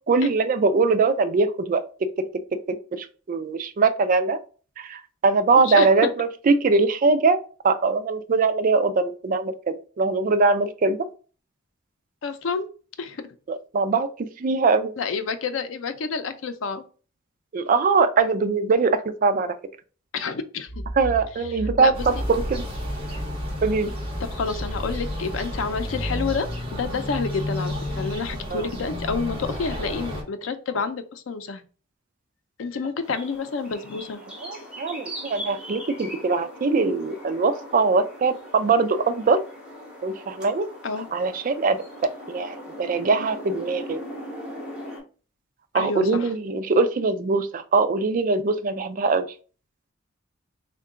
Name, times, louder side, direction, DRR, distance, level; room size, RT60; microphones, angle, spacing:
voice 1, 0.0-1.9 2.7-4.4 4.8-7.4 7.6-11.1 13.5-14.9 17.5-19.6 21.0-22.6 23.6-23.9 28.5-28.7 34.4-39.5 40.0-40.7 41.1-41.8 42.3-44.0 45.7-49.3, right 4 dB, 45° right, 10 dB, 0.4 m, -22 dB
voice 2, 5.6-5.9 12.2-12.7 13.0-13.2 15.0-16.9 20.1-20.8 21.8-21.9 24.2-31.6 32.6-34.2 40.8-41.1 45.7-46.3, left 4 dB, 85° left, 10 dB, 0.5 m, -29 dB
Accelerating revving vroom, 20.7-27.9, equal, 35° left, 0.6 m, -36 dB
sound 1, 21.9-30.2, left 1 dB, 30° right, 1.0 m, -31 dB
sound 2, 33.0-45.0, equal, 5° right, 1.4 m, -40 dB
3.7 x 2.2 x 3.6 m, 0.38 s
head